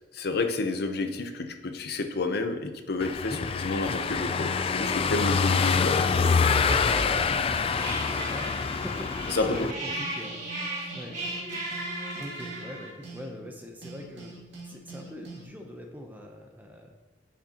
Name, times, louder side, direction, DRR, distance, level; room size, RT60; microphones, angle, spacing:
voice 1, 0.1-3.3 3.6-6.1 9.3-9.5, left 3 dB, 60° left, 7 dB, 0.7 m, -30 dB
Car passing by / Engine, 3.0-9.7, left 5 dB, 30° left, 0.3 m, -26 dB
voice 2, 4.4-4.7 6.7-8.5 8.8-10.5 10.9-11.2 12.2-14.3 14.7-16.9, equal, 10° right, 2 dB, 0.7 m, -41 dB
sound 1, 7.7-12.9, right 1 dB, 45° right, 1.8 m, -36 dB
sound 2, 9.8-13.5 13.8-15.4, right 3 dB, 75° right, 2.1 m, -44 dB
10.0 x 6.2 x 2.9 m, 1.2 s
head